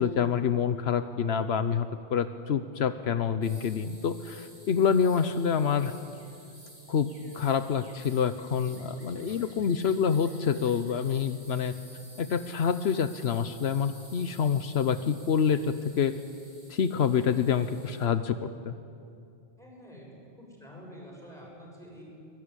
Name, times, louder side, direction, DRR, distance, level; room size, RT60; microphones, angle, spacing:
voice 1, 0.0-5.9 6.9-11.7 12.2-16.1 16.7-18.7, left 7 dB, 80° left, 11 dB, 1.1 m, -27 dB
sound 1, 3.4-18.1, right 1 dB, 45° right, 3.3 m, -52 dB
voice 2, 8.9-9.8 19.6-20.1 20.3-22.0, equal, 5° left, -3 dB, 7.5 m, -48 dB
23.0 x 20.0 x 9.9 m, 2.6 s
omnidirectional pair, 1.1 m